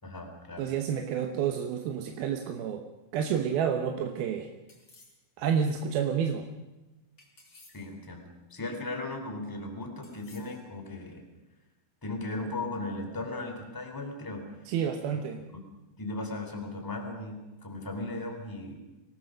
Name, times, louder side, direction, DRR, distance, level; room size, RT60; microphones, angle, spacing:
voice 1, 0.0-0.7 7.7-11.2 12.0-14.5 15.5-15.6 16.0-18.8, left 2 dB, 5° left, 3 dB, 2.7 m, -37 dB
voice 2, 0.6-2.9 3.1-4.5 5.4-6.5 14.7-15.5, right 7 dB, 75° right, 5 dB, 2.9 m, -29 dB
sound 1, 4.7-5.3 7.2-8.0 10.0-10.7, left 3 dB, 30° left, 4.2 m, -57 dB
25.0 x 18.5 x 6.4 m, 1.0 s
omnidirectional pair, 4.6 m